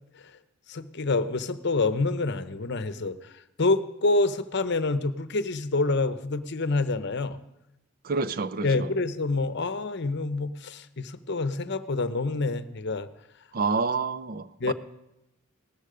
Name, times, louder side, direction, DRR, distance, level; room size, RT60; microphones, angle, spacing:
voice 1, 0.7-3.3 3.6-7.4 8.6-13.1 14.6-14.7, left 3 dB, 55° left, 0.8 m, -27 dB
voice 2, 8.0-8.9 13.5-14.7, right 4 dB, 45° right, 0.5 m, -28 dB
17.5 x 13.5 x 5.1 m
head